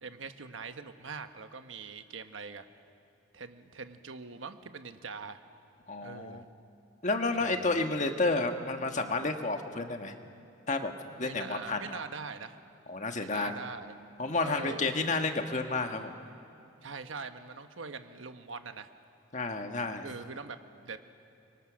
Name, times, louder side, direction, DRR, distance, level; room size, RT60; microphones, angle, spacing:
voice 1, 0.0-2.7 3.3-5.4 6.0-6.4 7.4-7.8 11.1-12.6 13.1-13.9 14.4-14.9 16.8-18.9 20.0-21.0, right 4 dB, 80° right, 8 dB, 1.2 m, -43 dB
voice 2, 5.9-6.4 7.0-10.1 10.7-10.9 11.2-12.0 12.9-13.6 14.2-16.1 19.3-20.1, left 3 dB, 40° left, 5 dB, 1.5 m, -31 dB
30.0 x 24.0 x 6.4 m, 2.7 s
head